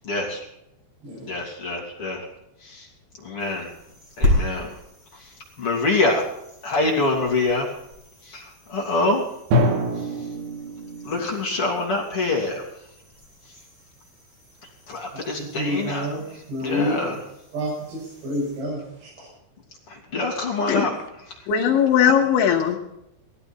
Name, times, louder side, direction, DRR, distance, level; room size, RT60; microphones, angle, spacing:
voice 1, 0.0-0.4 1.3-2.3 2.6-2.9 3.2-3.7 4.2-4.7 5.6-6.2 6.6-7.7 8.3-9.3 11.0-12.6 14.9-16.1 16.6-17.2 19.9-20.9, left 2 dB, 35° left, -1 dB, 2.9 m, -25 dB
sound 1, 3.4-18.6, left 1 dB, 10° right, 6.0 m, -34 dB
Drum, 9.5-11.4, equal, 85° right, 4.9 m, -24 dB
voice 2, 15.5-17.1 17.5-18.8, equal, 60° right, -7 dB, 8.9 m, -28 dB
voice 3, 21.5-22.8, left 8 dB, 75° left, 1 dB, 3.7 m, -19 dB
18.0 x 14.5 x 4.4 m, 0.83 s
omnidirectional pair, 5.7 m